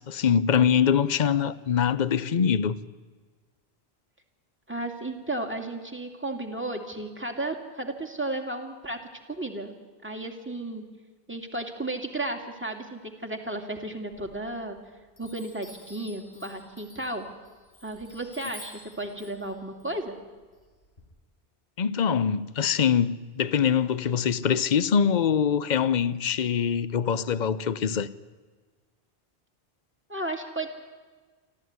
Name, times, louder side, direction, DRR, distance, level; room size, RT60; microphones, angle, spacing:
voice 1, 0.0-2.8 21.8-28.1, left 7 dB, 50° left, 0.9 m, -24 dB
voice 2, 4.7-9.0 9.3-9.7 10.0-10.8 11.3-14.8 15.2-17.3 17.8-20.2 30.1-30.7, right 2 dB, 10° right, 2.6 m, -34 dB
Chime, 14.1-14.8 15.2-21.0, left 2 dB, 85° left, 5.9 m, -50 dB
25.0 x 15.0 x 9.5 m
omnidirectional pair, 1.0 m